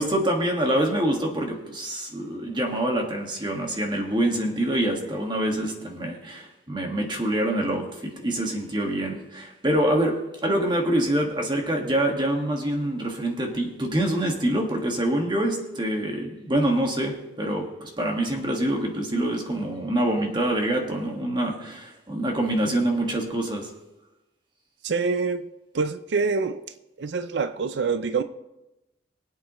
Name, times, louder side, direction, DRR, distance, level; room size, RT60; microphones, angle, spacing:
voice 1, 0.0-23.7, right 1 dB, 25° right, 1.8 m, -25 dB
voice 2, 24.8-26.6 27.0-28.2, right 4 dB, 85° right, 0.5 m, -26 dB
23.5 x 8.3 x 3.1 m
head